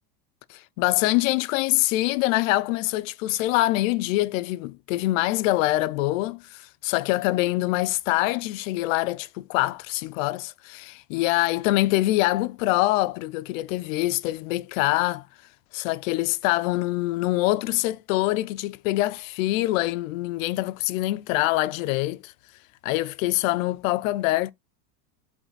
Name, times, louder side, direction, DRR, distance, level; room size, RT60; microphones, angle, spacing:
voice 1, 0.5-15.3 15.7-22.3 22.8-24.5, left 18 dB, 60° left, 0.5 m, -24 dB
8.1 x 3.4 x 3.9 m
supercardioid pair, 165°, 47 cm